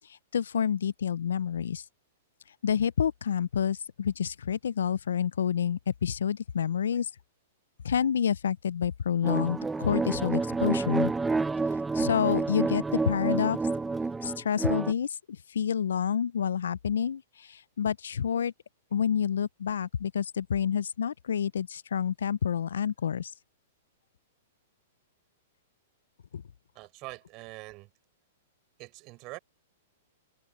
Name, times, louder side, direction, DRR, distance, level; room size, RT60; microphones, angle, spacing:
voice 1, 0.3-1.8 2.6-7.1 7.8-11.1 11.9-13.6 14.2-18.5 18.9-23.3 26.3-26.4, left 8 dB, 85° left, 0.3 m, -28 dB
sound 1, 9.2-14.9, right 3 dB, 10° right, 0.6 m, -29 dB
voice 2, 26.8-27.9 28.8-29.4, right 23 dB, 40° right, 5.3 m, -44 dB
hypercardioid pair, 135°, 0 cm